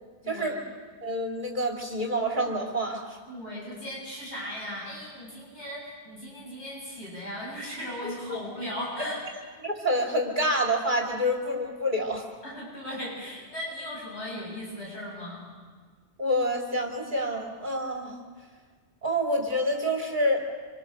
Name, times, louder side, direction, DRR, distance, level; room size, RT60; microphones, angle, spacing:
voice 1, 0.3-0.6 1.0-3.2 8.0-8.1 9.0-9.1 9.6-12.3 16.2-18.2 19.0-20.4, equal, 45° right, 1 dB, 2.8 m, -27 dB
voice 2, 3.3-9.2 12.4-15.4, equal, 90° left, -5 dB, 8.0 m, -37 dB
26.5 x 26.0 x 6.6 m, 1.5 s
omnidirectional pair, 1.1 m